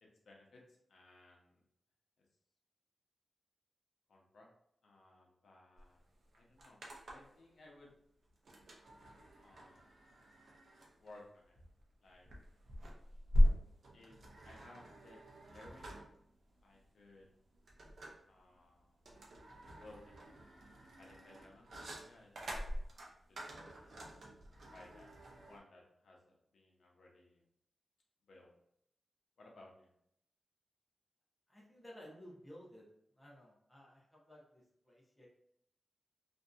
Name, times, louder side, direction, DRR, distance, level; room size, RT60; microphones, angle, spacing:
voice 1, 0.0-1.6 4.1-4.5 4.8-6.0 6.3-6.8 7.1-7.9 9.4-9.9 11.0-11.6 12.0-12.3 13.9-14.2 14.4-15.2 15.5-16.0 16.6-17.3 18.3-19.0 19.8-20.2 21.0-22.7 23.3-24.0 24.7-25.1 25.4-26.2 26.5-27.4 28.3-28.5 29.4-29.9, left 2 dB, 80° left, -1 dB, 0.6 m, -60 dB
sound 1, 5.8-5.9 6.1-7.4 8.4-25.6, equal, 65° right, 0.6 m, -39 dB
voice 2, 31.5-32.9 33.1-35.3, equal, 5° left, -5 dB, 0.7 m, -56 dB
2.7 x 2.5 x 2.3 m, 0.73 s
wide cardioid pair, 175°, 0 cm